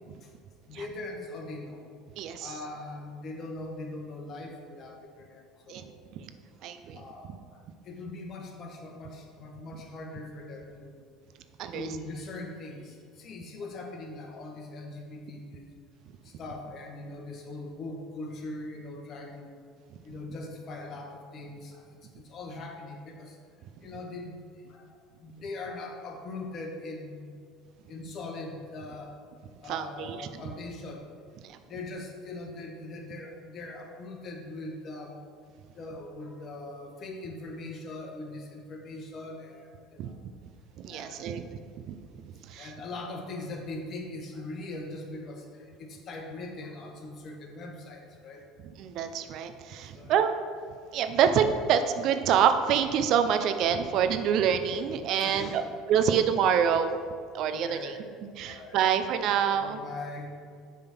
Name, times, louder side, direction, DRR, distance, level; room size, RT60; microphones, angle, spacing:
voice 1, 0.7-1.8 2.4-6.0 6.9-7.4 7.8-11.0 11.7-15.6 16.2-19.5 20.0-23.4 23.8-24.4 24.7-24.9 25.2-27.4 27.9-29.1 29.6-31.0 31.7-35.2 35.7-40.2 40.9-41.3 42.6-48.4 49.9-50.3 55.2-55.7 57.5-58.1 58.4-58.8 59.5-60.3, left 2 dB, 50° left, 2 dB, 1.3 m, -41 dB
voice 2, 2.2-2.5 5.7-5.8 6.6-7.0 11.6-11.9 29.7-30.3 40.0-40.1 40.8-41.6 41.9-42.0 42.5-42.7 48.8-50.4 50.9-55.6 55.9-56.9 57.3-57.9 58.4-59.8, right 8 dB, 60° right, 9 dB, 0.5 m, -26 dB
6.9 x 3.7 x 5.9 m, 2.1 s
hypercardioid pair, 85°, 0 cm